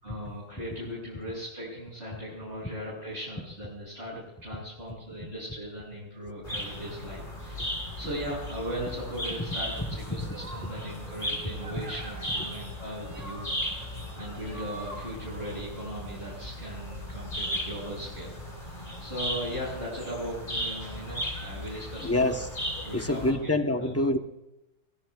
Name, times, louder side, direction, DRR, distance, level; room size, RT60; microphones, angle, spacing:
voice 1, 0.0-7.7 8.0-13.4 14.2-22.2 22.8-23.5 23.8-23.9, equal, 35° right, -8 dB, 6.8 m, -38 dB
sound 1, 6.4-23.3, equal, 30° left, 4.1 m, -37 dB
sound 2, 10.2-16.1, right 2 dB, 85° right, 3.7 m, -46 dB
voice 2, 22.0-22.5 22.9-24.2, left 1 dB, 10° left, 6 dB, 0.7 m, -26 dB
23.5 x 21.5 x 2.4 m, 0.91 s
omnidirectional pair, 1.7 m